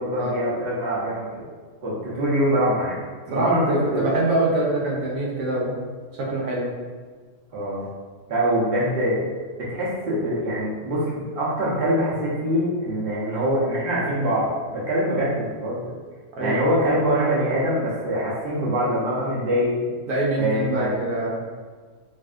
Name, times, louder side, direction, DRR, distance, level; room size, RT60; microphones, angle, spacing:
voice 1, 0.0-1.5 1.8-3.0 3.3-4.1 7.5-7.8 8.3-9.2 9.6-15.9 16.4-19.8 20.3-21.0, equal, 45° right, -7 dB, 0.9 m, -24 dB
voice 2, 3.3-5.8 6.2-6.7 16.4-16.9 20.1-21.4, right 1 dB, 80° right, -4 dB, 1.2 m, -24 dB
3.3 x 2.6 x 2.4 m, 1.5 s
omnidirectional pair, 1.6 m